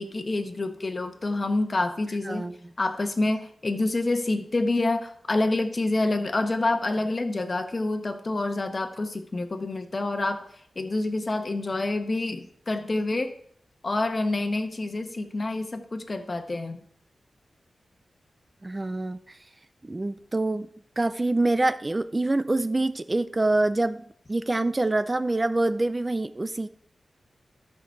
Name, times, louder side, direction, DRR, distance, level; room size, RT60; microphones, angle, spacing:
voice 1, 0.0-2.5 2.8-13.3 13.8-16.8, left 2 dB, 40° left, 6 dB, 1.1 m, -27 dB
voice 2, 2.3-2.6 18.6-19.2 19.8-20.7 21.0-24.0 24.3-26.7, right 2 dB, 25° right, 11 dB, 0.4 m, -25 dB
13.0 x 5.9 x 4.6 m, 0.64 s
wide cardioid pair, 95°, 0 cm